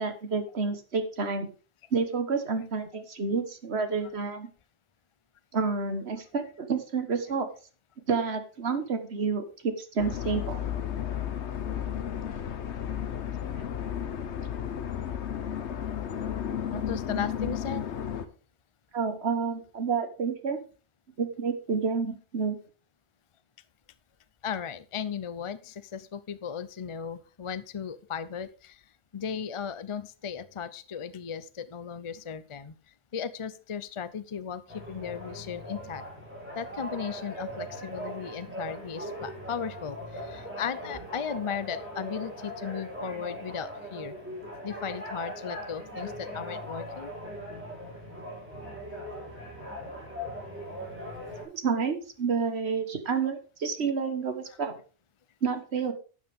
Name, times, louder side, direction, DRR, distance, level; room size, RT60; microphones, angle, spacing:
voice 1, 0.0-1.5 1.9-4.5 5.5-7.5 8.1-10.6 18.9-20.6 21.2-22.6 51.5-54.7 55.4-55.9, right 5 dB, 65° right, 8 dB, 1.7 m, -29 dB
sound 1, 10.0-18.3, left 9 dB, 75° left, 1.2 m, -33 dB
voice 2, 16.7-17.9 24.4-28.8 29.1-36.0 36.5-44.2 44.6-47.1, left 7 dB, 35° left, 13 dB, 0.5 m, -36 dB
sound 2, 34.7-51.4, equal, 10° right, 4.1 m, -40 dB
12.0 x 8.3 x 3.5 m, 0.36 s
omnidirectional pair, 1.2 m